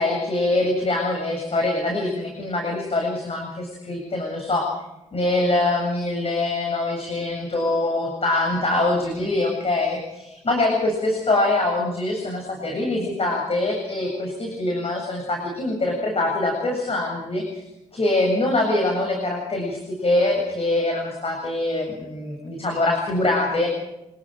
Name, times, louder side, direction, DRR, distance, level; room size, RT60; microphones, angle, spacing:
voice 1, 0.0-4.8 5.1-17.6 17.9-23.7, left 2 dB, 40° left, 1 dB, 7.7 m, -24 dB
27.5 x 20.5 x 5.3 m, 0.94 s
hypercardioid pair, 40°, 15 cm